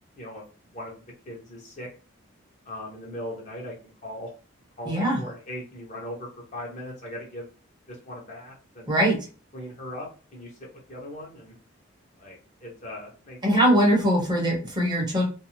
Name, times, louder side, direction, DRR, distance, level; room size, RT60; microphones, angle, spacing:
voice 1, 1.3-1.9 2.6-4.3 4.8-7.5 7.9-8.9 9.5-11.5 12.2-13.6, left 1 dB, 40° left, -2 dB, 0.9 m, -39 dB
voice 2, 4.9-5.2 8.9-9.2 13.4-15.3, equal, 20° right, -1 dB, 0.7 m, -21 dB
2.6 x 2.0 x 2.8 m, 0.36 s
head